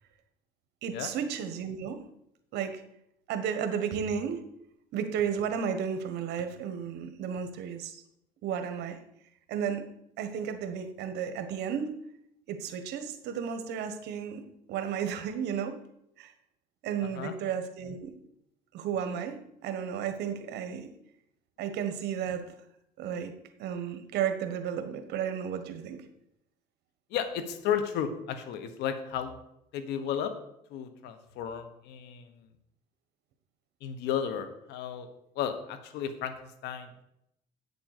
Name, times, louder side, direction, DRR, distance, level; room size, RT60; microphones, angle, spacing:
voice 1, 0.8-2.0 2.5-2.8 3.3-4.4 4.9-8.0 8.4-9.0 9.5-9.9 10.2-12.0 12.5-15.8 16.2-16.3 16.8-18.2 18.7-20.9 21.6-22.5 23.0-26.1, right 7 dB, 80° right, 9 dB, 1.3 m, -33 dB
voice 2, 17.0-17.3 27.1-29.4 29.7-30.3 30.7-32.3 33.8-35.1 35.3-36.3 36.6-37.0, left 8 dB, 90° left, 9 dB, 1.3 m, -33 dB
8.6 x 7.0 x 6.7 m, 0.77 s
cardioid pair, 110°, 17 cm